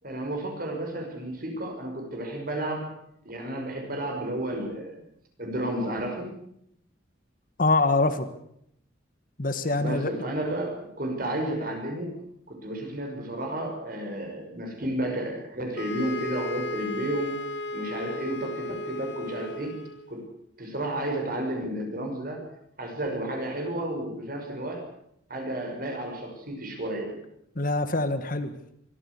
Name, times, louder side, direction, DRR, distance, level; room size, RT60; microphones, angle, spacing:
voice 1, 0.0-2.9 3.2-5.0 5.4-6.3 9.8-12.2 12.5-17.4 17.7-19.8 20.1-20.2 20.6-22.4 22.8-24.8 25.3-27.2, right 1 dB, 50° right, 3 dB, 6.1 m, -32 dB
voice 2, 7.6-8.3 9.4-10.1 27.5-28.5, left 2 dB, 45° left, 10 dB, 1.6 m, -24 dB
sound 1, 15.7-20.1, left 2 dB, 65° left, 1.8 m, -35 dB
23.5 x 14.5 x 8.4 m, 0.73 s
head